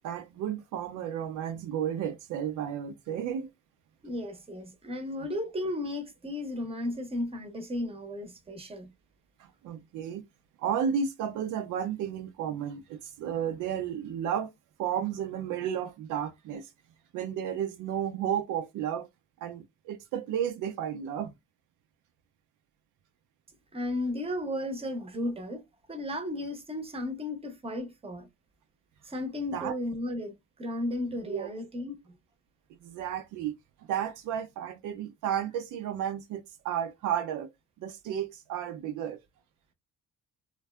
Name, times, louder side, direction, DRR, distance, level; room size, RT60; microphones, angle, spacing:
voice 1, 0.0-3.5 9.4-10.2 10.6-14.5 14.8-16.7 17.1-19.1 19.4-21.3 29.5-29.7 31.2-31.5 32.8-37.5 37.8-39.2, right 9 dB, 90° right, 0.5 m, -33 dB
voice 2, 4.0-8.9 23.7-25.6 25.9-28.3 29.0-32.2, left 1 dB, 20° right, 0.7 m, -34 dB
2.5 x 2.2 x 2.2 m
cardioid pair, 90°, 30 cm